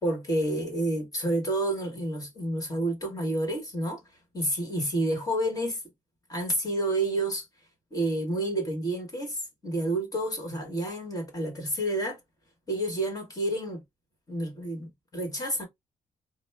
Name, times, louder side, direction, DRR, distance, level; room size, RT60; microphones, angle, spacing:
voice 1, 0.0-4.0 4.3-5.8 6.3-7.4 7.9-12.2 12.7-13.8 14.3-15.7, right 1 dB, 25° left, 1.6 m, -29 dB
4.9 x 2.1 x 3.4 m
cardioid pair, 160°, 14 cm